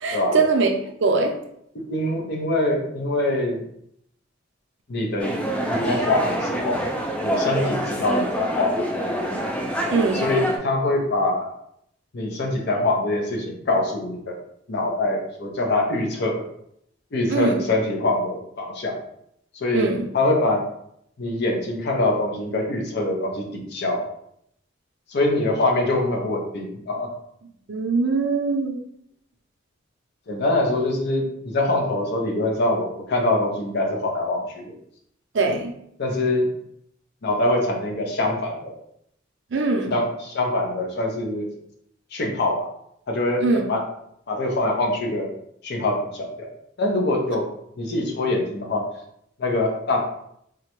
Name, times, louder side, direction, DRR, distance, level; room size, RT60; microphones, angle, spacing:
voice 1, 0.0-0.7 1.0-1.4 9.9-10.2 17.3-17.6 19.7-20.1 27.7-28.8 35.3-35.7 39.5-39.9 43.4-43.6, right 3 dB, 65° right, 3 dB, 0.5 m, -21 dB
voice 2, 1.7-3.6 4.9-5.4 5.7-6.8 7.2-8.8 10.1-11.5 12.1-14.4 14.7-16.4 17.1-19.0 19.5-19.8 20.1-20.6 21.2-24.1 25.1-27.1 30.3-34.7 36.0-36.5 37.2-38.8 39.9-41.5 42.1-42.7 43.1-43.9 44.3-45.3 45.6-46.5 46.8-47.5 47.8-48.9 49.4-50.0, left 2 dB, 55° left, 1 dB, 0.6 m, -24 dB
sound 1, 5.2-10.6, equal, 5° left, 0.3 m, -26 dB
3.6 x 2.1 x 2.9 m, 0.73 s
head